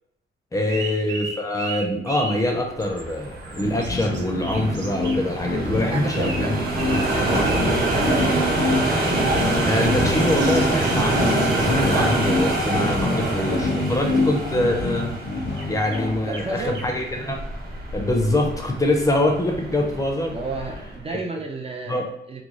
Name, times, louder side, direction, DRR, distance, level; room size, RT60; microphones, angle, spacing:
voice 1, 0.5-7.5 9.6-15.1 15.7-17.4 17.9-20.3 21.1-21.2 21.9-22.1, left 1 dB, 20° left, 2 dB, 0.5 m, -24 dB
sound 1, 0.6-2.3 2.8-4.2 4.5-5.2 6.1-6.4 6.8-7.1 7.3-7.6 9.0-9.4 9.7-11.6 15.6-15.7 15.9-16.0 16.3-16.4 16.7-16.9, right 4 dB, 80° right, 0.8 m, -35 dB
sound 2, 2.7-21.0, right 2 dB, 55° right, 0.8 m, -26 dB
sound 3, 3.6-16.1, left 3 dB, 70° left, 0.6 m, -26 dB
voice 2, 5.7-6.5 6.8-8.6 9.9-10.5 16.2-16.8 20.3-22.4, right 3 dB, 30° right, 1 dB, 0.4 m, -32 dB
3.0 x 2.2 x 3.7 m, 0.76 s
wide cardioid pair, 155°, 19 cm